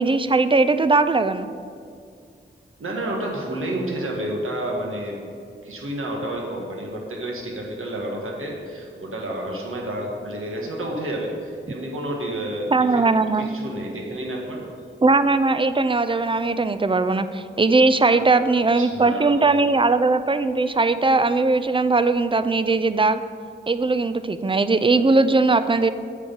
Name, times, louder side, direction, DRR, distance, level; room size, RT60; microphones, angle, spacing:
voice 1, 0.0-1.5 12.7-13.5 15.0-23.2 23.7-25.9, right 3 dB, 25° right, 12 dB, 0.4 m, -19 dB
voice 2, 2.8-5.2 5.6-13.0 13.4-14.7 18.1-19.3, right 1 dB, 85° right, -1 dB, 1.6 m, -30 dB
8.2 x 7.8 x 5.4 m, 2.3 s
wide cardioid pair, 80°, 21 cm